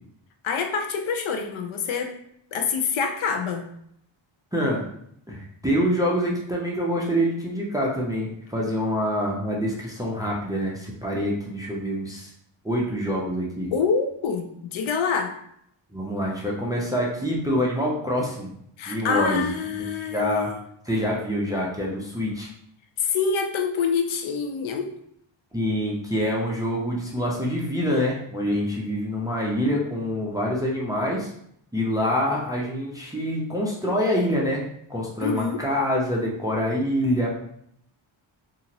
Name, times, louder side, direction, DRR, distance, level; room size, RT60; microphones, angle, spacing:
voice 1, 0.4-2.2 2.5-3.7 13.7-15.4 18.8-20.5 23.0-24.9 35.2-35.6, left 5 dB, 80° left, 5 dB, 0.6 m, -26 dB
voice 2, 4.5-4.8 5.3-12.3 12.6-13.7 15.9-18.5 18.9-19.4 20.1-20.5 20.9-22.5 25.5-31.3 31.7-37.4, equal, 10° right, -3 dB, 0.3 m, -26 dB
2.8 x 2.5 x 2.7 m, 0.71 s
wide cardioid pair, 150°, 48 cm